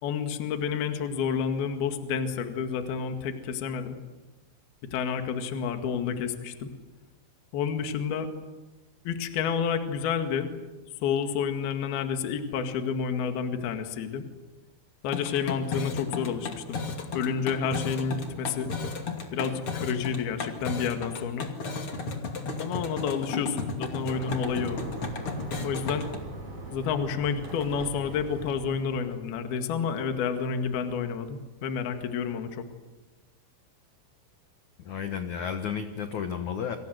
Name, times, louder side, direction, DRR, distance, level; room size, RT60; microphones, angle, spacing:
voice 1, 0.0-4.0 4.9-6.7 7.5-8.3 9.1-10.5 11.0-14.2 15.0-16.8 17.1-18.7 19.3-21.5 22.6-24.8 25.6-26.1 26.7-32.6, left 6 dB, 60° left, 7 dB, 3.5 m, -29 dB
sound 1, 15.1-26.2, left 4 dB, 35° left, 2.5 m, -34 dB
sound 2, 24.1-29.3, right 2 dB, 40° right, 7.6 m, -41 dB
voice 2, 34.8-36.8, left 7 dB, 90° left, 7 dB, 1.6 m, -32 dB
28.5 x 25.5 x 7.9 m, 1.1 s
omnidirectional pair, 5.7 m